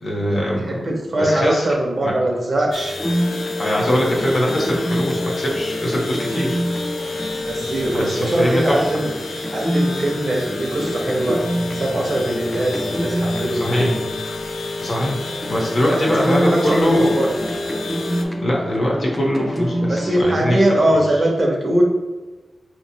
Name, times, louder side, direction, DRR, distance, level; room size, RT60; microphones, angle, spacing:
voice 1, 0.0-1.7 2.0-2.1 3.6-6.6 7.9-8.9 13.6-13.9 14.2-14.4 14.8-17.1 18.4-21.0, equal, 45° left, -2 dB, 0.8 m, -22 dB
voice 2, 0.6-2.9 7.4-9.1 9.5-11.4 11.7-14.0 15.9-17.3 19.9-21.8, right 1 dB, 40° right, 0 dB, 0.7 m, -21 dB
sound 1, 2.7-18.2, left 3 dB, 70° left, 0.4 m, -29 dB
sound 2, 3.0-15.0 15.4-20.2, equal, 5° left, 0.4 m, -27 dB
4.9 x 2.9 x 2.7 m, 1.2 s
wide cardioid pair, 165°, 0 cm